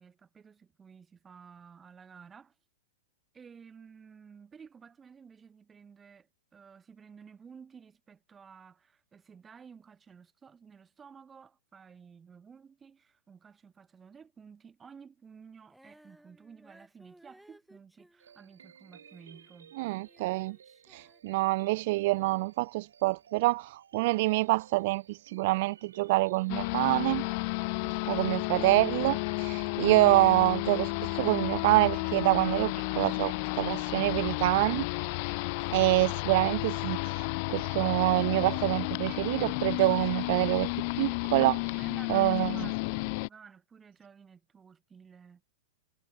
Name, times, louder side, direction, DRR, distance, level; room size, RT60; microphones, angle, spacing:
voice 1, 0.0-2.5 3.3-19.8 27.8-28.0 41.8-45.4, right 6 dB, 20° right, 4.4 m, -53 dB
Female singing, 15.7-19.5 19.8-21.9, right 1 dB, ahead, 5.4 m, -61 dB
sound 1, 18.2-36.5, right 8 dB, 75° right, 4.6 m, -57 dB
voice 2, 19.8-20.6 20.9-27.3 28.1-34.9 35.7-40.7 41.0-41.8 42.1-42.6, right 21 dB, 55° right, 0.4 m, -26 dB
sound 2, 26.5-43.3, left 30 dB, 50° left, 0.8 m, -32 dB
hypercardioid pair, 105°, 0 cm